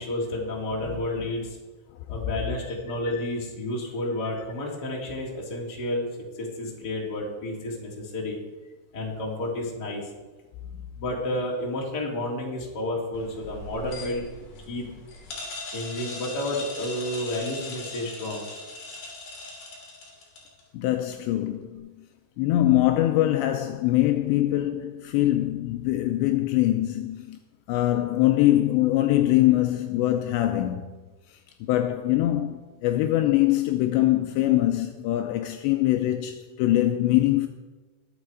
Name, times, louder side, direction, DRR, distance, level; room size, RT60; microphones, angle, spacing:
voice 1, 0.0-1.6 2.1-6.1 6.3-8.4 8.9-10.1 10.9-14.2 14.7-14.9 15.7-18.5, left 1 dB, 25° left, 2.7 m, -31 dB
sound 1, 13.1-20.6, left 2 dB, 50° left, 4.2 m, -39 dB
voice 2, 20.7-21.9 22.4-27.4 27.7-30.9 31.3-37.5, left 14 dB, 85° left, 2.6 m, -23 dB
21.0 x 8.0 x 4.8 m
omnidirectional pair, 5.6 m